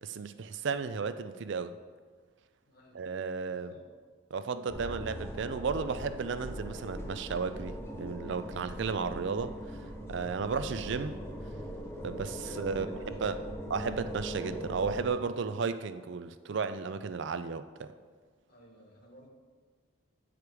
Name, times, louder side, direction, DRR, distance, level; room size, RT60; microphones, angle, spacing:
voice 1, 0.0-1.7 2.9-3.7 4.3-9.8 10.1-11.2 12.0-13.4 13.7-17.9, right 5 dB, 55° right, 11 dB, 0.4 m, -34 dB
voice 2, 2.7-3.0 3.4-3.9 10.5-10.9 12.4-13.4 15.0-15.6 18.5-19.3, equal, 45° left, 0 dB, 1.3 m, -55 dB
sound 1, 4.7-15.1, equal, 10° left, 0.6 m, -41 dB
8.5 x 5.0 x 4.7 m, 1.5 s
head